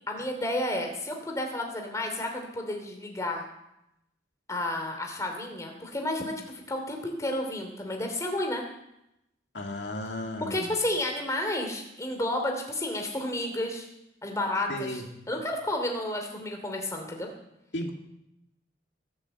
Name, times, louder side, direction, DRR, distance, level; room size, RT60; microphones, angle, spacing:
voice 1, 0.1-3.4 4.5-6.3 6.7-8.6 10.4-13.9 14.2-15.0 15.3-17.3, left 1 dB, 15° left, 2 dB, 2.8 m, -31 dB
voice 2, 9.5-10.7 14.7-15.1 17.7-17.9, left 1 dB, 80° left, 2 dB, 2.1 m, -34 dB
20.0 x 7.3 x 8.1 m, 0.85 s
head